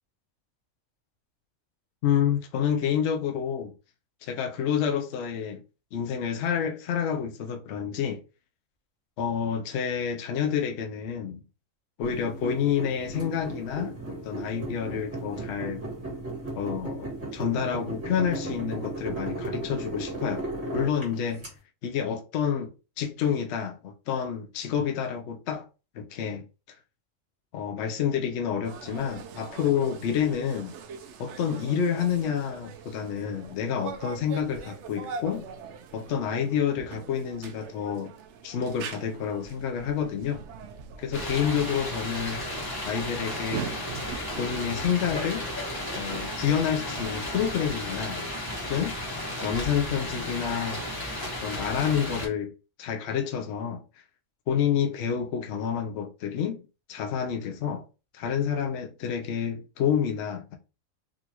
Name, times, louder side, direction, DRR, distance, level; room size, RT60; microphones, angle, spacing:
voice 1, 2.0-3.7 4.2-5.6 5.9-8.2 9.2-11.4 12.0-13.9 14.2-15.8 16.6-20.5 20.7-21.4 21.8-25.7 25.9-26.8 27.5-30.8 31.2-35.5 35.9-38.1 38.4-40.4 41.0-42.4 42.8-43.7 44.4-45.5 46.0-48.2 48.7-48.9 49.4-50.8 51.4-52.5 52.8-53.8 54.5-56.6 56.9-57.8 58.1-60.6, left 8 dB, 65° left, 0.8 m, -28 dB
sound 1, 12.0-21.5, right 2 dB, 40° right, 1.7 m, -36 dB
sound 2, 28.6-47.7, right 6 dB, 70° right, 0.8 m, -42 dB
sound 3, 41.1-52.3, left 1 dB, 20° left, 1.0 m, -34 dB
3.8 x 2.4 x 2.9 m
omnidirectional pair, 1.4 m